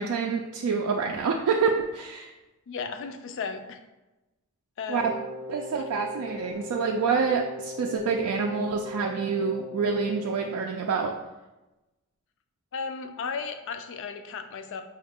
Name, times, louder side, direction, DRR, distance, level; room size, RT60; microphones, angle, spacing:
voice 1, 0.0-2.3 4.9-5.0 5.5-11.1, right 5 dB, 85° right, 1 dB, 0.3 m, -27 dB
voice 2, 2.7-3.8 4.8-5.3 12.7-14.8, left 5 dB, 60° left, 7 dB, 0.4 m, -35 dB
Wind instrument woodwind instrument, 5.0-10.7, left 1 dB, 15° right, 0.5 m, -39 dB
4.8 x 2.4 x 3.5 m, 1.1 s
head